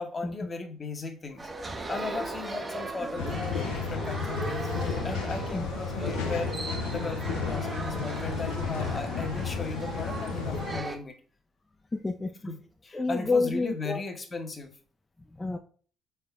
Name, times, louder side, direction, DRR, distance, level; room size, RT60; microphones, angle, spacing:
voice 1, 0.0-11.1 12.4-14.7, left 3 dB, 40° left, 5 dB, 0.8 m, -37 dB
sound 1, 1.4-11.0, right 3 dB, 30° right, 0.6 m, -37 dB
sound 2, 3.2-10.8, left 5 dB, 85° left, 0.5 m, -33 dB
voice 2, 11.9-12.3 12.9-14.0 15.3-15.6, left 3 dB, 20° left, 4 dB, 0.4 m, -28 dB
3.9 x 3.4 x 2.3 m, 0.42 s
hypercardioid pair, 55°, 0 cm